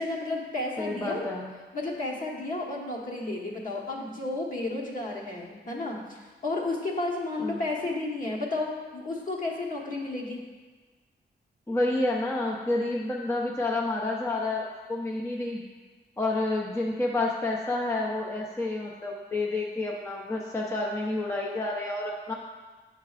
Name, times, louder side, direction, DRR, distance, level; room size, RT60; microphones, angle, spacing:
voice 1, 0.0-1.3 1.7-10.5, left 2 dB, 45° left, -3 dB, 1.2 m, -32 dB
voice 2, 0.8-1.5 7.4-7.6 11.7-15.6 16.2-22.3, left 2 dB, 15° left, -2 dB, 0.7 m, -29 dB
9.0 x 5.8 x 2.4 m, 1.4 s
wide cardioid pair, 100°, 19 cm